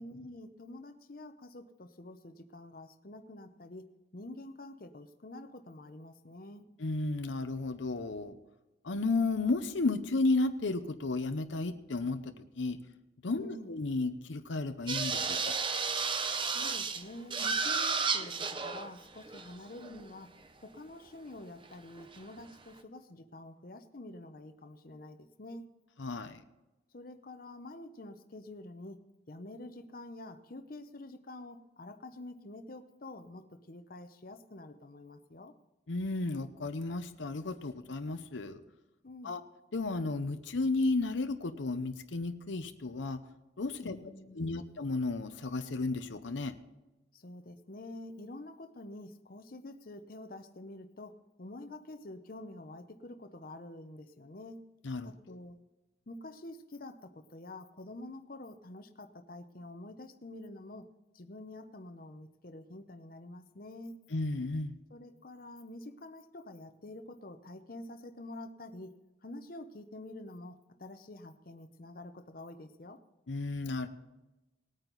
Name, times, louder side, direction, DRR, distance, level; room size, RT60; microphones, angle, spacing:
voice 1, 0.0-6.6 13.3-13.7 16.5-20.3 20.6-25.7 26.9-35.5 39.0-39.4 43.8-44.8 47.1-54.6 55.0-55.6 56.1-60.9 61.1-64.0 64.9-69.0 69.2-73.0, left 1 dB, 50° left, 8 dB, 0.8 m, -47 dB
voice 2, 6.8-8.4 8.8-12.8 13.2-15.4 26.0-26.4 35.9-38.6 39.2-39.4 39.7-43.2 43.6-44.0 44.3-46.5 54.8-55.1 64.1-64.7 73.3-73.9, left 3 dB, 80° left, 9 dB, 0.8 m, -33 dB
sound 1, 14.9-17.0 17.3-18.9 19.2-20.0 22.0-22.4, right 5 dB, 25° right, 0.7 m, -32 dB
19.0 x 9.0 x 4.0 m, 1.0 s
head